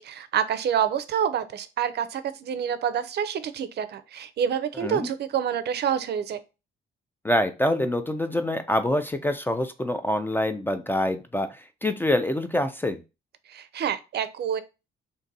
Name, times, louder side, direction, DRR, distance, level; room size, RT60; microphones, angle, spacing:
voice 1, 0.0-6.4 13.5-14.6, right 8 dB, 55° right, 0.4 m, -27 dB
voice 2, 7.2-11.5 11.8-13.0, left 1 dB, 10° left, 0.3 m, -25 dB
2.6 x 2.5 x 3.9 m
cardioid pair, 90°, 20 cm